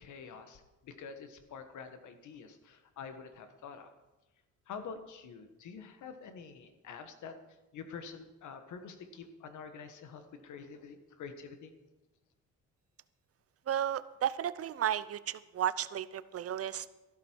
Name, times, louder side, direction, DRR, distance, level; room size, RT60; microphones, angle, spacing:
voice 1, 0.0-3.9 4.7-7.3 7.7-11.7, left 6 dB, 75° left, 8 dB, 1.6 m, -47 dB
voice 2, 13.7-16.9, right 10 dB, 50° right, 16 dB, 0.7 m, -33 dB
14.0 x 12.0 x 4.6 m, 1.1 s
cardioid pair, 90°, 30 cm